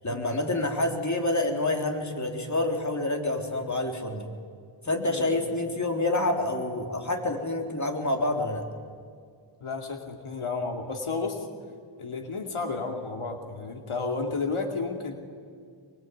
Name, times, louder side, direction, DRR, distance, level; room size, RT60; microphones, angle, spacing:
voice 1, 0.0-4.3 4.8-8.6, left 2 dB, 35° left, 3 dB, 4.0 m, -28 dB
voice 2, 5.0-5.5 9.6-11.5 12.0-15.2, left 4 dB, 80° left, 4 dB, 2.8 m, -32 dB
25.0 x 24.0 x 9.5 m, 2.2 s
wide cardioid pair, 75°, 49 cm